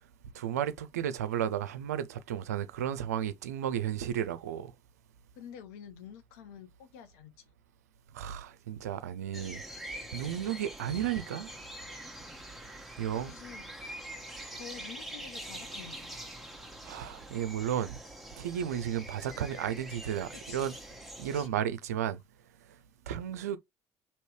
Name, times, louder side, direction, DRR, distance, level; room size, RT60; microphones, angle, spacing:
voice 1, 0.3-4.7 8.1-9.6 9.9-11.5 13.0-13.4 16.8-18.0 18.4-20.8 21.2-22.2 23.1-23.6, right 10 dB, 90° right, 0.4 m, -33 dB
voice 2, 5.4-7.3 13.1-13.7 14.6-16.1 20.3-20.7 21.3-21.6, left 8 dB, 80° left, 0.8 m, -48 dB
sound 1, 9.3-21.5, right 1 dB, ahead, 1.2 m, -45 dB
3.1 x 2.9 x 4.6 m
hypercardioid pair, 60°, 8 cm